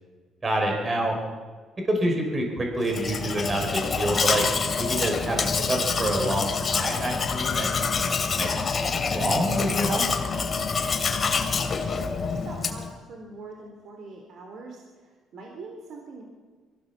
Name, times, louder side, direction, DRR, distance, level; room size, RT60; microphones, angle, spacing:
voice 1, 0.4-1.2 1.9-4.4 4.8-8.6 9.1-10.1, right 1 dB, 30° right, 2 dB, 5.4 m, -27 dB
Domestic sounds home sounds, 2.8-12.9, left 5 dB, 35° left, 2.5 m, -26 dB
voice 2, 11.8-16.2, right 3 dB, 60° right, 1 dB, 3.8 m, -43 dB
23.0 x 16.0 x 7.3 m, 1.5 s
cardioid pair, 105°, 0 cm